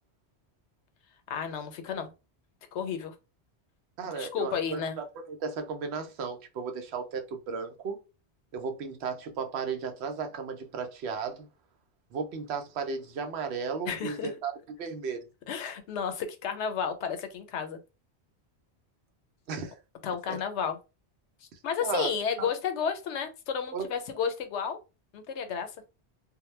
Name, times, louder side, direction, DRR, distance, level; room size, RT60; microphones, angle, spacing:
voice 1, 1.3-2.1 2.7-3.1 4.1-5.0 13.9-14.3 15.5-17.8 20.0-20.8 21.6-24.8 25.1-25.7, left 6 dB, 85° left, 0.9 m, -32 dB
voice 2, 4.0-8.0 8.5-11.5 12.1-14.5 14.8-15.2 19.5-19.8 20.3-20.4 21.5-22.1 22.4-22.5 23.7-23.9, right 5 dB, 75° right, 0.8 m, -35 dB
2.2 x 2.0 x 3.1 m
omnidirectional pair, 1.1 m